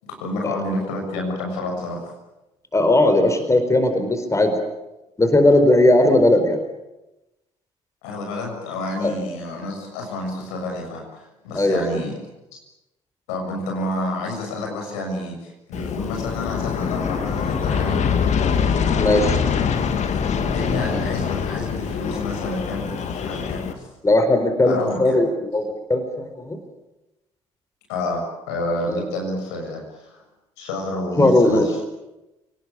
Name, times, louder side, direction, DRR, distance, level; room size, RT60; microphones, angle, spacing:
voice 1, 0.0-2.0 8.0-12.2 12.5-12.6 13.3-18.2 20.3-23.9 24.6-25.2 27.9-30.2 30.6-31.8, left 2 dB, 75° left, 2 dB, 6.9 m, -29 dB
voice 2, 2.7-4.5 5.2-6.6 9.0-9.1 11.5-11.8 19.0-19.4 24.0-26.6 28.9-29.0 31.2-31.7, left 1 dB, 20° left, 8 dB, 4.4 m, -18 dB
Aircraft, 15.7-23.7, left 6 dB, 55° left, 2.4 m, -24 dB
29.5 x 19.0 x 8.7 m, 0.99 s
hypercardioid pair, 50°, 15 cm